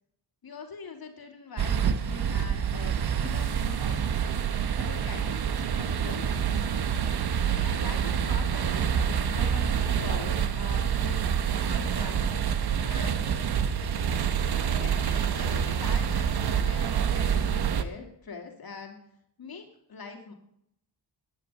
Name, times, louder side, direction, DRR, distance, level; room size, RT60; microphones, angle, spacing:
voice 1, 0.4-4.2 4.7-6.6 7.5-9.0 9.3-11.3 11.6-12.3 12.8-13.2 14.7-19.0 19.4-20.3, left 4 dB, 60° left, 3 dB, 2.5 m, -43 dB
sound 1, 1.6-17.8, right 8 dB, 65° right, 1.1 m, -27 dB
17.0 x 10.0 x 5.4 m, 0.76 s
cardioid pair, 100°, 42 cm